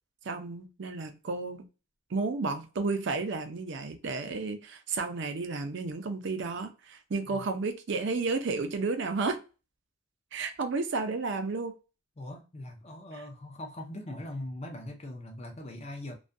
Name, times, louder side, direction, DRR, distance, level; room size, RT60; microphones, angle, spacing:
voice 1, 0.2-1.6 2.1-9.4 10.3-11.7, right 3 dB, 55° right, 0.4 m, -32 dB
voice 2, 12.2-16.1, left 1 dB, 30° left, 0.5 m, -41 dB
2.3 x 2.2 x 2.5 m
head